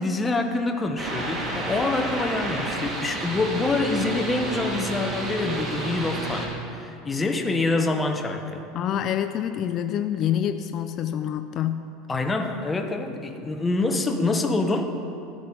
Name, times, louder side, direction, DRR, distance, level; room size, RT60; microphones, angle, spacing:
voice 1, 0.0-8.6 12.1-15.0, left 3 dB, 15° left, 5 dB, 0.8 m, -26 dB
sound 1, 1.0-6.5, right 2 dB, 30° right, 2.1 m, -30 dB
voice 2, 8.7-11.8, left 10 dB, 45° left, 8 dB, 0.4 m, -26 dB
12.5 x 10.0 x 3.8 m, 2.6 s
supercardioid pair, 125°, 0 cm